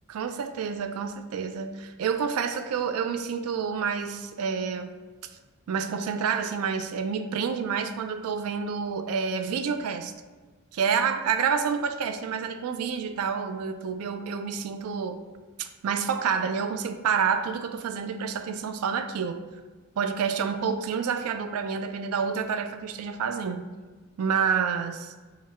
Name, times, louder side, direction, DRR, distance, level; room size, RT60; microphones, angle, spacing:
voice 1, 0.1-5.0 5.7-10.1 10.7-15.2 15.6-19.5 20.0-23.7 24.2-25.1, right 6 dB, 80° right, 8 dB, 0.3 m, -28 dB
3.8 x 2.1 x 4.2 m, 1.3 s
head